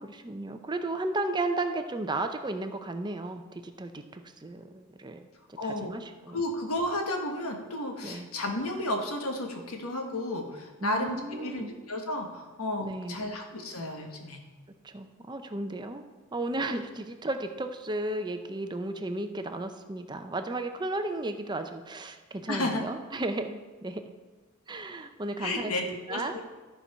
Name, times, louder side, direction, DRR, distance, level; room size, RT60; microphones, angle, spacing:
voice 1, 0.0-5.2 5.6-6.4 8.0-8.3 10.8-11.7 12.8-13.3 14.8-16.0 16.3-24.0 24.7-26.4, right 2 dB, 20° right, 7 dB, 0.6 m, -34 dB
voice 2, 5.6-5.9 6.3-14.4 22.5-22.8 25.4-26.4, left 1 dB, 85° left, 3 dB, 1.5 m, -32 dB
13.5 x 4.6 x 5.5 m, 1.3 s
head